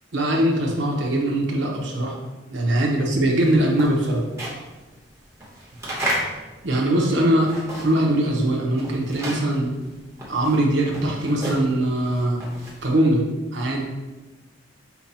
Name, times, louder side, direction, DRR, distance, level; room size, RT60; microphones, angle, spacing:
voice 1, 0.1-2.1 2.5-4.2 6.6-7.5 7.8-9.7 10.3-12.4 12.8-13.2 13.5-13.8, right 1 dB, 85° right, -1 dB, 0.9 m, -21 dB
sound 1, 3.2-8.2 8.4-12.9, equal, 15° right, 1.1 m, -33 dB
5.7 x 2.3 x 4.1 m, 1.2 s
head